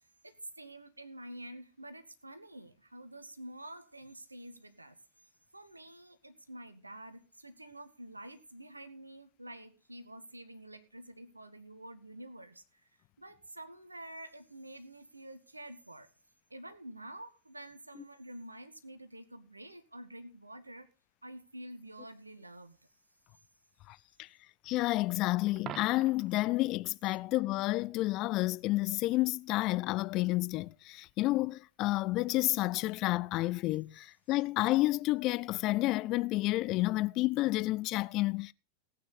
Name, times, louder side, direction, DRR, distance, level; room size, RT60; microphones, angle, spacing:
voice 1, 0.0-5.0 5.5-12.6 13.2-16.1 16.5-20.9 21.2-22.8, right 1 dB, 85° right, 1.9 m, -48 dB
voice 2, 24.7-38.5, left 18 dB, 40° left, 0.5 m, -30 dB
Coin (dropping), 25.6-26.4 32.5-32.7, right 11 dB, 30° right, 0.9 m, -45 dB
18.5 x 9.4 x 4.1 m
figure-of-eight pair, 90°, 0 cm